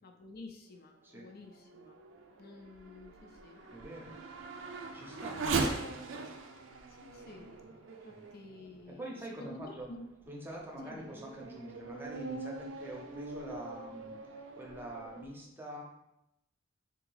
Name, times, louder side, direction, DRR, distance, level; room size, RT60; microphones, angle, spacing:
voice 1, 0.0-2.0 2.4-3.6 6.9-7.5 8.0-10.1 10.8-11.2, left 2 dB, 50° left, 3 dB, 0.4 m, -50 dB
Race car auto racing / Accelerating revving vroom, 1.2-9.2 9.8-9.9 10.5-15.3, right 3 dB, 90° right, 0.5 m, -41 dB
sound 1, 3.1-9.2, left 3 dB, 75° left, 0.8 m, -61 dB
voice 2, 3.7-4.2 4.9-5.8 8.1-8.3 8.9-9.9 10.3-15.8, right 1 dB, 10° right, -2 dB, 0.7 m, -45 dB
3.4 x 2.8 x 3.9 m, 0.85 s
head